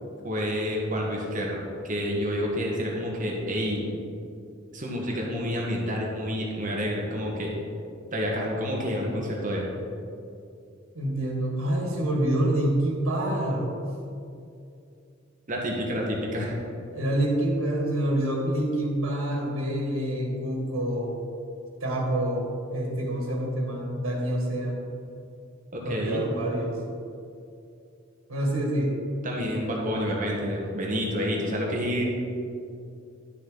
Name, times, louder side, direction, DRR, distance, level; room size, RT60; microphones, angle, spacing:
voice 1, 0.2-3.9 4.7-7.5 8.1-9.7 15.5-16.6 25.7-26.2 29.2-32.0, equal, 40° right, -2 dB, 1.5 m, -29 dB
voice 2, 11.0-13.7 16.9-21.2 21.8-24.9 25.8-26.8 28.3-28.9, right 1 dB, 90° right, -1 dB, 1.7 m, -27 dB
11.5 x 6.4 x 3.9 m, 2.5 s
head